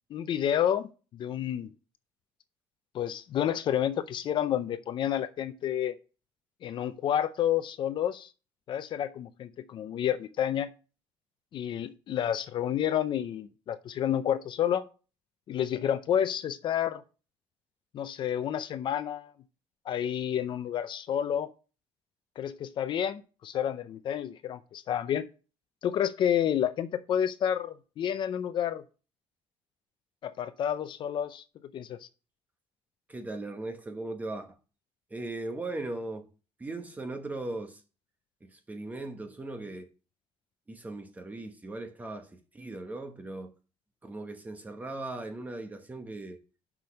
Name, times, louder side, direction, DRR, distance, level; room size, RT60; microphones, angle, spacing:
voice 1, 0.1-0.9 1.2-1.7 2.9-5.9 6.6-8.3 8.7-10.7 11.5-14.8 15.5-17.0 17.9-19.3 19.9-21.5 22.4-25.3 25.8-28.8 30.2-31.4 31.7-32.0, left 10 dB, 50° left, 0.6 m, -30 dB
voice 2, 33.1-34.6 35.1-36.3 36.6-37.8 38.4-39.9 40.7-43.5 44.0-46.4, right 2 dB, 15° right, 1.2 m, -38 dB
6.1 x 5.4 x 6.3 m
cardioid pair, 140°, 10 cm